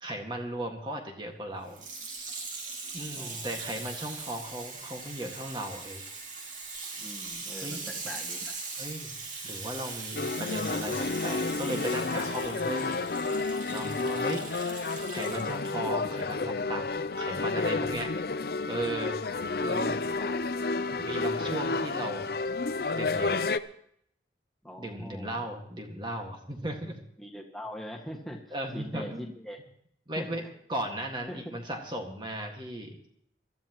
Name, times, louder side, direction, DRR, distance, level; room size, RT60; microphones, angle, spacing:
voice 1, 0.0-1.8 2.9-6.0 7.6-7.8 8.8-9.2 9.4-13.0 13.7-14.5 15.1-16.8 17.2-18.1 18.7-19.2 19.6-20.0 21.0-22.3 22.9-23.4 24.8-27.0 28.5-29.3 30.1-30.4 30.7-33.1, right 1 dB, 25° right, 2 dB, 1.8 m, -36 dB
Water tap faucet / Sink (filling or washing), 1.7-15.7 16.4-16.5, right 4 dB, 45° right, 2.6 m, -40 dB
voice 2, 3.1-3.7 6.9-8.6 20.1-20.4 24.6-25.4 27.2-28.4 28.7-29.6 30.2-30.5 31.3-31.4 32.4-32.5, equal, ahead, 1 dB, 1.8 m, -42 dB
sound 1, 10.2-23.6, left 3 dB, 55° left, 0.5 m, -31 dB
23.0 x 13.5 x 3.0 m, 0.69 s
head